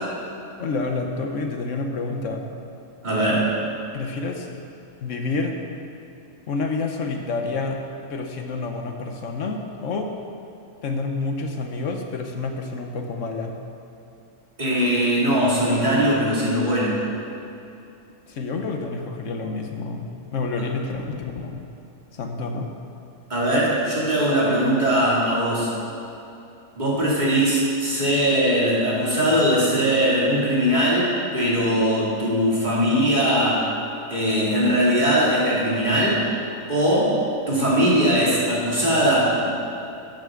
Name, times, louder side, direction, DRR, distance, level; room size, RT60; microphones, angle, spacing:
voice 1, 0.6-2.4 3.9-4.5 5.0-5.6 6.5-7.8 8.1-10.1 10.8-13.5 18.3-21.6 22.1-22.7, left 3 dB, 60° left, 3 dB, 1.2 m, -28 dB
voice 2, 3.0-3.6 14.6-17.0 23.3-25.7 26.8-33.7 34.1-36.3 36.7-37.2 37.5-39.5, equal, 30° right, -7 dB, 2.7 m, -20 dB
13.0 x 9.2 x 3.8 m, 2.8 s
omnidirectional pair, 1.5 m